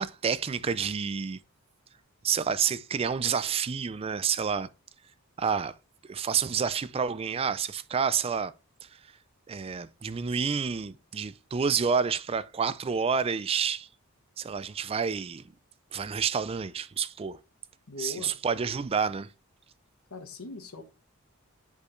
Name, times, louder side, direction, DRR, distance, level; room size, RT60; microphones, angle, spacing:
voice 1, 0.0-1.4 2.2-4.7 5.4-5.8 6.1-8.5 8.8-9.1 9.5-13.9 14.4-15.4 15.9-17.4 18.0-19.3, right 6 dB, 25° right, 0.3 m, -29 dB
voice 2, 17.9-18.3 20.1-20.8, left 3 dB, 80° left, 1.2 m, -39 dB
8.4 x 5.2 x 3.2 m
head